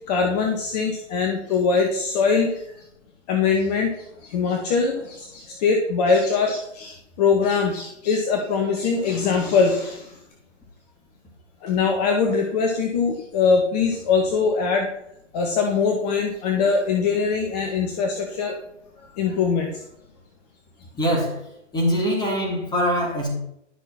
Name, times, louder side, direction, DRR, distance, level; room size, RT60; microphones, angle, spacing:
voice 1, 0.1-2.7 3.3-10.1 11.6-14.9 15.3-18.5 19.2-19.8, left 5 dB, 35° left, 2 dB, 1.8 m, -22 dB
voice 2, 21.0-21.4 21.7-23.3, equal, 10° left, -1 dB, 4.0 m, -23 dB
12.5 x 6.6 x 6.0 m, 0.77 s
figure-of-eight pair, 125°, 37 cm